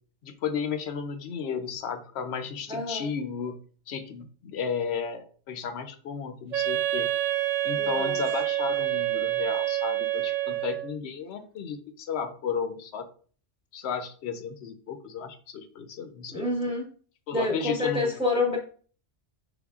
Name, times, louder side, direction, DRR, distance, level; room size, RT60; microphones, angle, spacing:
voice 1, 0.2-3.6 3.9-7.1 7.6-13.1 13.7-16.4 17.3-18.1, left 6 dB, 65° left, 9 dB, 0.8 m, -33 dB
voice 2, 2.7-3.1 7.7-8.2 16.3-16.8 17.3-18.6, left 2 dB, 5° right, -2 dB, 0.9 m, -28 dB
Wind instrument woodwind instrument, 6.5-11.0, right 13 dB, 60° right, 0.4 m, -27 dB
5.2 x 3.6 x 2.4 m, 0.43 s
omnidirectional pair, 1.2 m